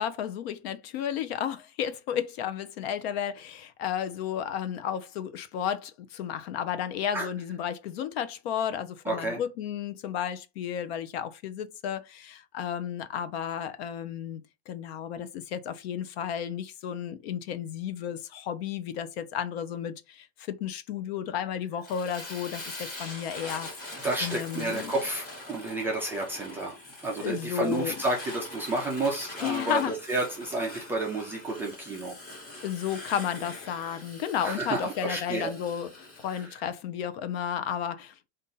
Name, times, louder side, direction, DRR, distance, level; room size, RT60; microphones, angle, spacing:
voice 1, 0.0-24.9 27.2-28.0 29.4-29.9 32.6-38.3, left 9 dB, 55° left, 0.7 m, -33 dB
voice 2, 9.1-9.4 24.0-26.8 27.0-32.2 34.4-35.5 36.3-36.5, right 2 dB, 5° right, 0.4 m, -31 dB
Fire, 21.8-36.5, left 1 dB, 25° left, 1.4 m, -43 dB
4.0 x 2.5 x 3.8 m
supercardioid pair, 160°, 37 cm